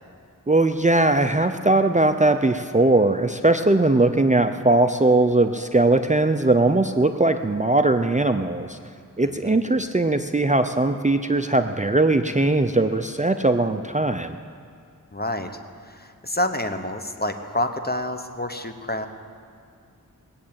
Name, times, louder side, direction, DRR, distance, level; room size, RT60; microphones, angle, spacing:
voice 1, 0.5-8.8 9.2-14.4, right 2 dB, 20° right, 7 dB, 0.5 m, -20 dB
voice 2, 9.2-9.6 15.1-15.5 15.9-19.1, left 1 dB, 25° left, 7 dB, 1.1 m, -28 dB
20.0 x 7.4 x 8.8 m, 2.3 s
wide cardioid pair, 45°, 35 cm